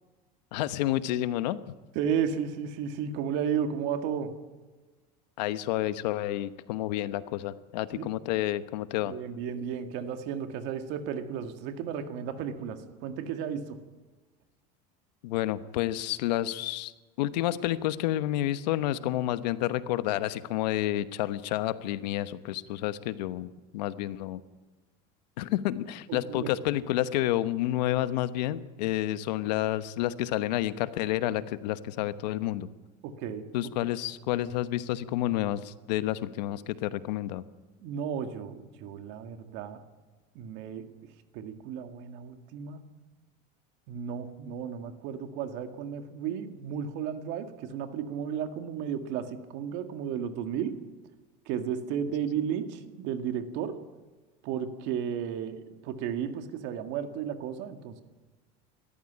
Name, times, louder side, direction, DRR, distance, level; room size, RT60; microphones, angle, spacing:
voice 1, 0.5-1.6 5.4-9.1 15.2-16.9 17.2-24.4 25.4-32.7 33.5-37.4, left 14 dB, 85° left, 13 dB, 1.1 m, -30 dB
voice 2, 2.0-4.4 7.9-8.1 9.1-13.8 26.1-26.5 33.0-33.5 37.8-39.8 40.3-40.9 41.3-42.8 43.9-50.8 51.5-53.8 54.4-58.0, right 8 dB, 60° right, 8 dB, 2.0 m, -33 dB
19.0 x 14.0 x 10.0 m, 1.3 s
supercardioid pair, 135°, 21 cm